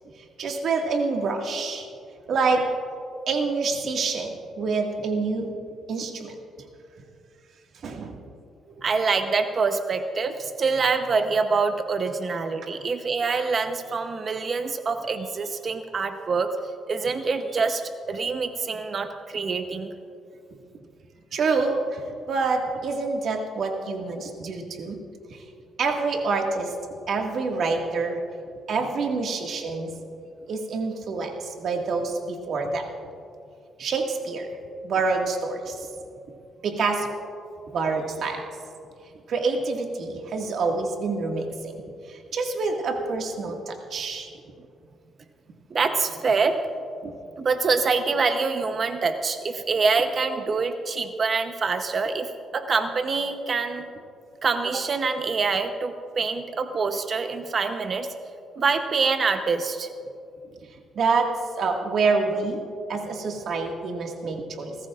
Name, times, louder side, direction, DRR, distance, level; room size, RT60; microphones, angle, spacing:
voice 1, 0.4-1.9 2.3-2.6 3.3-5.6 5.9-6.3 7.8-8.2 8.8-8.9 21.3-22.0 22.3-25.0 25.3-25.4 25.8-26.7 27.1-28.2 28.7-29.9 30.5-32.9 33.8-34.5 34.8-35.9 36.6-37.1 37.7-38.4 39.3-41.8 42.1-44.3 47.0-47.1 61.0-61.3 61.6-62.6 62.9-64.8, right 4 dB, 65° right, 2 dB, 1.8 m, -27 dB
voice 2, 8.8-16.5 16.9-19.9 45.7-46.6 47.4-53.9 54.4-58.1 58.6-59.9, right 4 dB, 45° right, 7 dB, 0.8 m, -25 dB
28.5 x 14.0 x 2.5 m, 2.5 s
cardioid pair, 90°, 0 cm